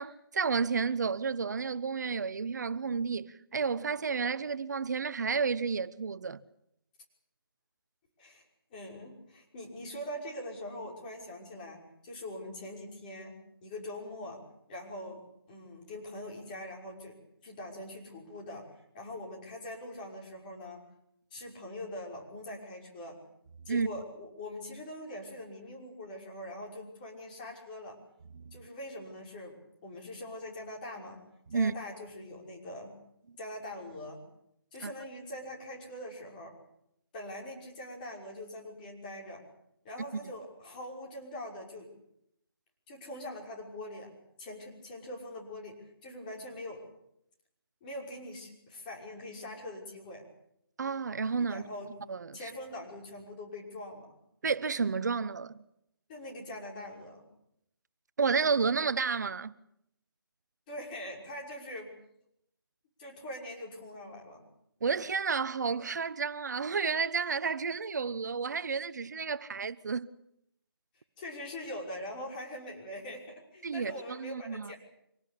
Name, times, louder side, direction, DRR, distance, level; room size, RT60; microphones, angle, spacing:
voice 1, 0.0-6.4 23.7-23.9 28.4-28.6 31.5-31.7 34.8-34.9 40.2-40.3 50.8-51.6 52.1-52.4 54.4-55.6 58.2-59.6 64.8-70.1 73.6-74.7, right 5 dB, 45° right, 1.0 m, -31 dB
voice 2, 8.7-14.4 14.7-17.1 17.4-20.8 21.3-23.2 23.7-28.0 28.5-29.6 29.8-31.2 31.5-32.9 33.4-34.2 34.7-36.5 37.1-39.4 39.8-41.9 42.9-44.1 44.4-46.8 47.8-50.2 51.5-51.9 52.3-54.1 56.1-57.2 60.7-61.9 63.0-64.5 71.2-74.8, left 1 dB, 20° left, 5.9 m, -43 dB
25.5 x 18.5 x 8.4 m
figure-of-eight pair, 165°, 13 cm